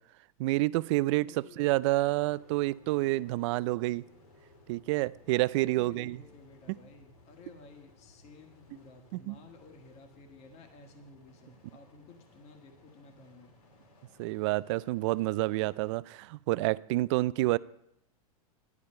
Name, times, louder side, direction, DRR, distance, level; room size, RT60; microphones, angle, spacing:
voice 1, 0.4-1.3 1.6-4.1 4.7-6.2 6.7-6.8 9.1-9.4 14.2-17.6, right 19 dB, 55° right, 19 dB, 0.4 m, -28 dB
voice 2, 1.1-1.8 5.4-13.6, left 3 dB, 35° left, 4 dB, 1.5 m, -54 dB
sound 1, 2.2-15.9, left 2 dB, 85° left, 2.9 m, -60 dB
11.0 x 11.0 x 4.3 m, 0.77 s
hypercardioid pair, 120°, 19 cm